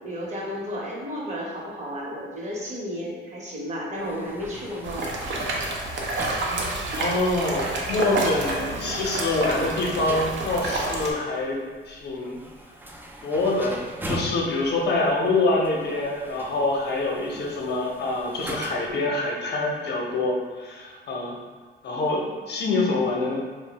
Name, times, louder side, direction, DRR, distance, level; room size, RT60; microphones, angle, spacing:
voice 1, 0.0-5.2, equal, 35° right, -4 dB, 0.9 m, -33 dB
sound 1, 4.0-19.0, right 1 dB, 10° right, 0.4 m, -41 dB
sound 2, 4.8-11.1, right 2 dB, 65° right, 0.6 m, -29 dB
voice 2, 6.9-11.6 11.9-12.4 13.2-21.4 21.8-23.4, left 2 dB, 55° left, -1 dB, 0.7 m, -25 dB
2.6 x 2.1 x 4.0 m, 1.5 s
cardioid pair, 90°, 20 cm